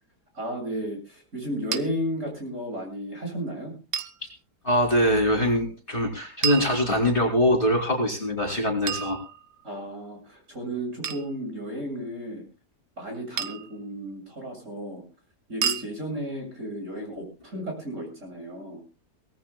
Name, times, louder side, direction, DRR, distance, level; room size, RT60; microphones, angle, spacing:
voice 1, 0.3-3.7 9.6-12.4 13.0-15.0 15.5-18.8, equal, 45° right, 1 dB, 7.6 m, -33 dB
sound 1, 1.7-1.8 3.9-4.2 6.4-7.3 8.9-9.8 11.0-11.3 13.4-13.8 15.6-15.9, right 8 dB, 85° right, 1.6 m, -31 dB
voice 2, 4.6-9.2, equal, 30° left, 1 dB, 3.4 m, -23 dB
23.0 x 18.0 x 2.3 m, 0.33 s
omnidirectional pair, 1.8 m